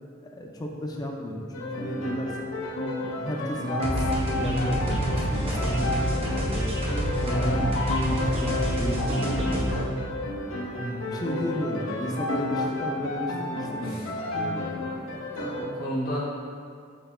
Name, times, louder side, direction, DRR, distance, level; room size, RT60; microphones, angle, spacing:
voice 1, 0.2-2.5 3.0-6.7 7.1-7.7 8.0-9.6 11.1-15.2, equal, 20° left, 0 dB, 0.4 m, -33 dB
sound 1, 1.5-15.6, left 2 dB, 75° left, 0.6 m, -32 dB
sound 2, 3.8-9.8, equal, 30° right, 0.7 m, -27 dB
voice 2, 10.7-11.2 13.8-14.0 15.3-16.2, equal, 50° left, -6 dB, 1.1 m, -33 dB
5.4 x 4.3 x 2.2 m, 2.2 s
head